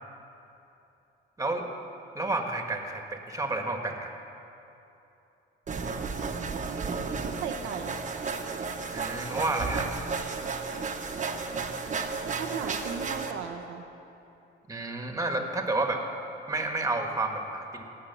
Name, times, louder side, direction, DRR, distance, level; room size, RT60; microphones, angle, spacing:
voice 1, 2.1-4.1 8.9-9.9 14.7-16.0 16.5-17.8, right 2 dB, 15° right, 4 dB, 1.5 m, -30 dB
sound 1, 5.7-13.3, right 4 dB, 40° right, 1.1 m, -33 dB
voice 2, 7.3-8.2 12.3-13.8, right 7 dB, 90° right, 6 dB, 0.8 m, -36 dB
19.0 x 6.6 x 6.9 m, 2.9 s
cardioid pair, 90°, 20 cm